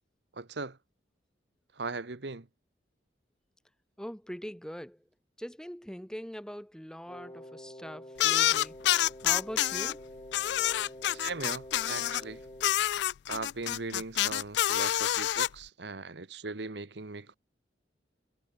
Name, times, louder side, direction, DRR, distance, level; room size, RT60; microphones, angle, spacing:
voice 1, 0.3-0.8 1.8-2.5 11.1-12.4 13.3-17.4, right 3 dB, 70° right, 1.2 m, -39 dB
voice 2, 4.0-5.1 5.4-8.8 9.2-10.1, equal, 5° left, 1.1 m, -42 dB
Wind instrument woodwind instrument, 7.1-12.8, equal, 25° left, 6.0 m, -47 dB
sound 1, 8.2-9.9 10.3-12.2 12.6-15.5, left 13 dB, 65° left, 0.3 m, -27 dB
head